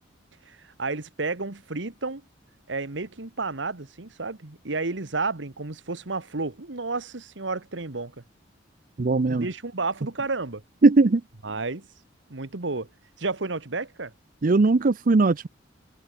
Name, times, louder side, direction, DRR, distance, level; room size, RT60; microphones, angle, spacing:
voice 1, 0.5-2.2 2.7-8.2 9.3-10.6 11.4-11.9 12.3-12.9 13.2-14.1, right 3 dB, 75° right, 1.5 m, -31 dB
voice 2, 9.0-9.5 10.8-11.2 14.4-15.5, right 3 dB, 45° right, 0.5 m, -19 dB
head